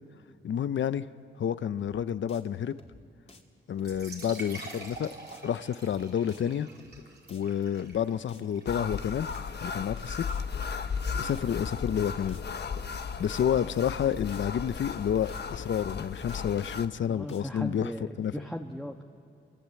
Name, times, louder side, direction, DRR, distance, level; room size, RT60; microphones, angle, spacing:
voice 1, 0.4-1.1 1.4-2.7 3.7-5.1 5.4-6.7 7.3-9.3 9.6-10.2 11.1-12.4 13.2-17.9 18.2-18.3, left 9 dB, 75° left, 14 dB, 0.8 m, -29 dB
sound 1, 1.8-2.0 2.3-2.4 2.7-3.0 3.3-3.4 3.8-4.0 4.3-4.4 4.7-5.0 5.3-5.4 5.8-6.0 6.3-6.4 6.7-7.0 7.3-7.4 7.8-8.0 8.3-8.4 8.7-9.0 9.3-9.4 9.8-10.0 10.3-10.4 10.7-11.0 11.3-11.4 11.8-12.0 12.3-12.4 12.7-13.0 13.3-13.4 13.8-14.0 14.3-14.4 14.7-15.0 15.3-15.4 15.8-16.0 16.3-16.4 16.7-17.0 17.3-17.4, left 3 dB, 35° left, 2.6 m, -54 dB
sound 2, 3.8-11.4, right 3 dB, 60° right, 4.8 m, -48 dB
sound 3, 8.7-16.9, left 5 dB, 55° left, 1.2 m, -35 dB
voice 2, 17.1-19.0, equal, ahead, 2 dB, 1.4 m, -37 dB
28.5 x 24.5 x 8.5 m, 2.6 s
cardioid pair, 75°, 20 cm